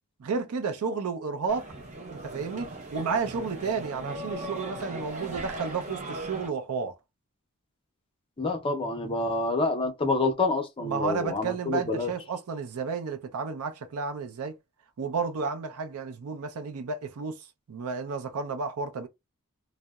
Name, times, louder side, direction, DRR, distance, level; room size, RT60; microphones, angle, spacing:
voice 1, 0.2-1.7 2.1-7.0 10.8-14.6 15.0-19.1, right 5 dB, 75° right, 0.5 m, -32 dB
sound 1, 1.5-6.5, right 2 dB, 30° right, 0.6 m, -38 dB
voice 2, 8.4-12.1, left 3 dB, 25° left, 0.5 m, -27 dB
2.7 x 2.0 x 2.2 m
head